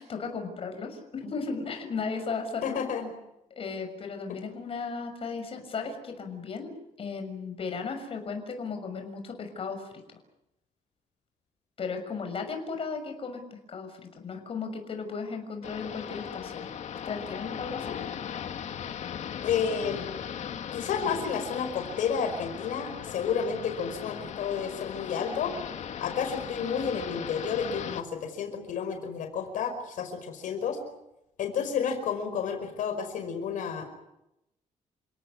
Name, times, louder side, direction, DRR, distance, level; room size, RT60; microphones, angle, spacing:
voice 1, 0.0-2.8 3.5-6.7 7.0-10.2 11.8-16.7 17.0-18.0, left 5 dB, 45° left, 5 dB, 6.5 m, -36 dB
voice 2, 2.6-3.1 19.4-20.1 20.7-25.5 26.0-30.8 31.4-33.9, left 7 dB, 85° left, 6 dB, 5.2 m, -31 dB
sound 1, 15.6-28.0, left 8 dB, 60° left, 2.0 m, -38 dB
29.5 x 18.0 x 9.8 m, 0.87 s
cardioid pair, 125°, 13 cm